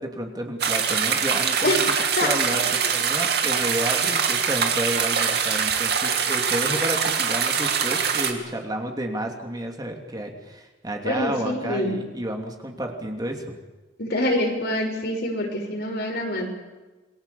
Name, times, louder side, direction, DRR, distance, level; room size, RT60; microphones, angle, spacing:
voice 1, 0.0-1.8 2.2-2.6 2.9-13.6, right 1 dB, 20° right, 2 dB, 2.9 m, -31 dB
sound 1, 0.6-8.3, right 7 dB, 65° right, 2.9 m, -23 dB
voice 2, 11.0-12.0 14.0-16.5, left 1 dB, 60° left, 2 dB, 6.1 m, -25 dB
28.0 x 22.5 x 7.1 m, 1.2 s
head